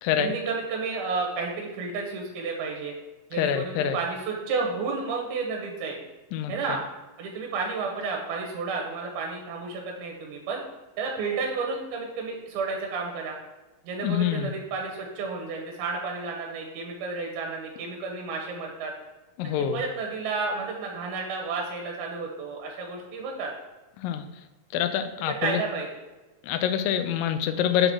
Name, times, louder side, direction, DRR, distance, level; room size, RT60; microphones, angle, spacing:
voice 1, 0.2-2.9 3.3-6.0 6.5-6.8 7.2-10.6 11.0-13.4 13.8-18.9 19.4-23.5 25.3-26.0, right 4 dB, 85° right, 0 dB, 2.8 m, -31 dB
voice 2, 3.4-4.0 6.3-6.5 14.0-14.5 19.4-19.8 24.0-24.2 24.7-25.6 26.4-27.9, left 9 dB, 80° left, 8 dB, 2.0 m, -26 dB
6.6 x 4.0 x 5.9 m, 1.1 s
omnidirectional pair, 4.3 m